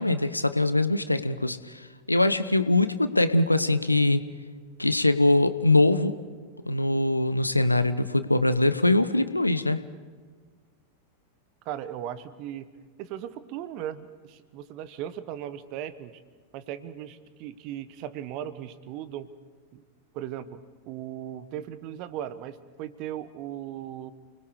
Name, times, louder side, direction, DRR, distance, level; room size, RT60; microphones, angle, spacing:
voice 1, 0.0-4.2 4.8-6.2 6.7-9.8, left 2 dB, 85° left, 13 dB, 0.9 m, -23 dB
voice 2, 11.6-12.7 13.0-16.1 16.5-19.3 19.7-19.8 20.1-20.6 20.9-24.1, right 11 dB, 40° right, 14 dB, 1.2 m, -37 dB
29.5 x 20.0 x 4.9 m, 1.5 s
figure-of-eight pair, 90°, 0 cm